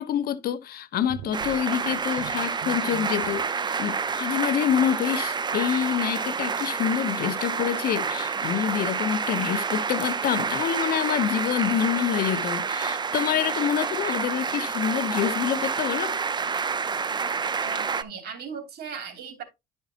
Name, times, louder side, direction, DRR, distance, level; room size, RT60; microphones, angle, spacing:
voice 1, 0.0-16.2, left 10 dB, 65° left, 1.0 m, -27 dB
sound 1, 0.9-3.4, right 11 dB, 90° right, 0.8 m, -42 dB
sound 2, 1.3-18.0, right 5 dB, 25° right, 0.6 m, -28 dB
voice 2, 17.6-19.4, right 6 dB, 70° right, 3.0 m, -38 dB
12.0 x 5.5 x 2.9 m
cardioid pair, 110°, 17 cm